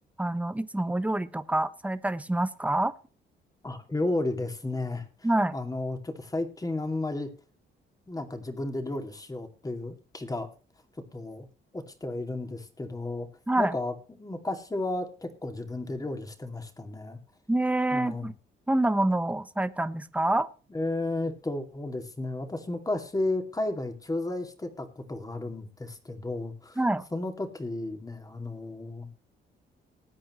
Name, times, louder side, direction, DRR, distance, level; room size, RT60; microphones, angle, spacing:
voice 1, 0.2-2.9 5.2-5.5 13.5-13.7 17.5-18.3 18.7-20.5 26.8-27.0, right 1 dB, 5° right, 13 dB, 0.9 m, -26 dB
voice 2, 3.6-5.1 5.5-7.3 8.1-10.5 11.1-11.5 11.7-13.3 13.6-17.2 17.9-18.3 20.7-26.8 27.1-29.1, left 2 dB, 20° left, 6 dB, 2.5 m, -33 dB
20.0 x 8.8 x 3.1 m, 0.35 s
cardioid pair, 90°, 20 cm